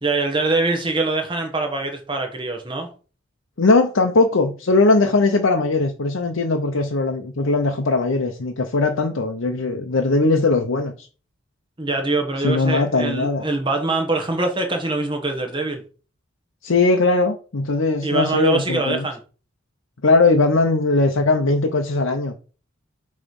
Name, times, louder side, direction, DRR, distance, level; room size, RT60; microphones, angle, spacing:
voice 1, 0.0-2.9 11.8-15.8 18.0-19.2, right 2 dB, 25° right, 1.2 m, -23 dB
voice 2, 3.6-11.1 12.4-13.4 16.6-19.1 20.0-22.3, left 3 dB, 75° left, 0.7 m, -19 dB
6.9 x 3.2 x 5.3 m
head